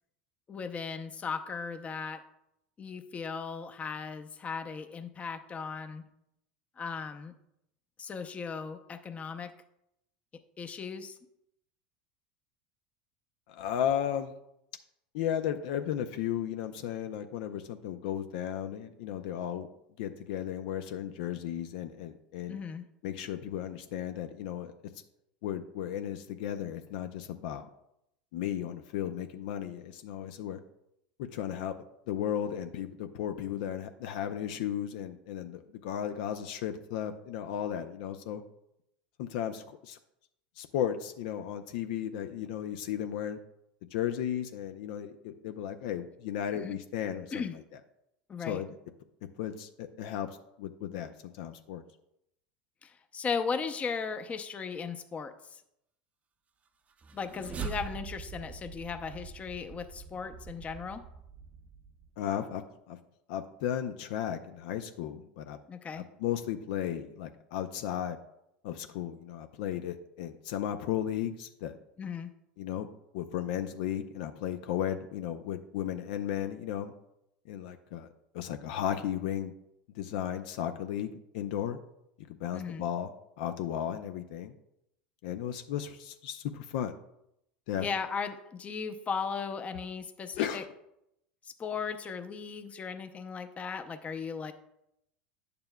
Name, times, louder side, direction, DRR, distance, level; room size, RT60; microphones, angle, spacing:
voice 1, 0.5-2.2 2.8-6.0 6.8-7.3 8.0-9.5 10.6-11.2 22.5-22.9 46.5-46.7 47.3-47.5 48.3-48.6 52.8-55.6 57.1-61.0 65.7-66.1 72.0-72.3 82.5-82.8 87.8-90.6 91.4-94.5, left 5 dB, 30° left, 8 dB, 0.7 m, -37 dB
voice 2, 13.5-14.3 15.1-19.7 20.0-22.6 23.0-24.7 25.4-27.7 28.3-30.6 31.2-31.7 32.1-38.4 39.2-40.0 40.6-43.4 43.9-47.4 48.5-48.7 49.4-51.8 62.2-62.6 62.9-63.0 63.3-65.6 65.9-68.2 68.6-71.8 72.6-72.9 73.1-76.9 77.5-78.1 78.3-79.5 80.0-81.8 82.3-83.1 83.4-84.5 85.2-86.9 87.7-87.9 90.4-90.6, left 10 dB, 70° left, 8 dB, 0.5 m, -35 dB
sound 1, 56.9-62.2, right 6 dB, 30° right, 0.6 m, -43 dB
9.4 x 6.8 x 2.2 m, 0.81 s
hypercardioid pair, 90°, 5 cm